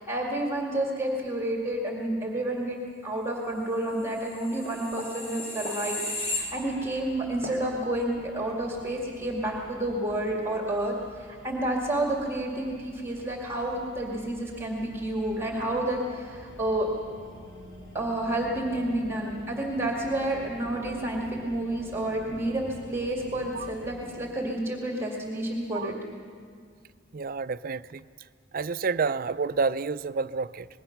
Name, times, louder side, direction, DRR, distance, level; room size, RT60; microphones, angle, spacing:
voice 1, 0.0-2.8 3.0-16.9 17.9-25.9, right 1 dB, 15° right, 2.1 m, -30 dB
sound 1, 4.1-7.0 7.4-7.6, left 2 dB, 35° left, 3.7 m, -35 dB
sound 2, 6.1-24.0, equal, 75° left, 5.0 m, -49 dB
voice 2, 27.1-28.0 28.5-30.7, right 4 dB, 50° right, 0.5 m, -29 dB
26.0 x 20.5 x 5.9 m
head